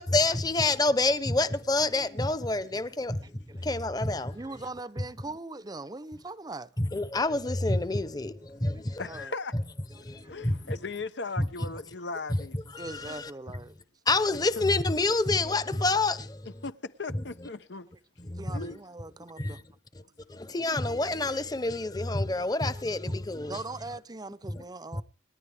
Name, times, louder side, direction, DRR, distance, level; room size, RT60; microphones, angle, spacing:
voice 1, 0.0-4.4 6.8-9.0 10.0-10.6 11.4-11.5 12.7-13.3 14.1-16.5 18.2-18.7 19.4-19.6 20.3-23.6 24.5-24.6 24.9-25.0, left 2 dB, 20° left, 0.9 m, -28 dB
voice 2, 4.3-6.7 9.1-9.3 10.2-10.4 12.7-13.8 18.4-19.6 22.7-22.8 23.5-25.0, right 2 dB, 20° right, 0.6 m, -40 dB
voice 3, 9.0-9.5 10.1-12.6 14.3-14.7 16.5-17.9 18.5-18.8 20.0-20.1, left 3 dB, 85° left, 1.0 m, -38 dB
28.0 x 10.5 x 3.5 m
head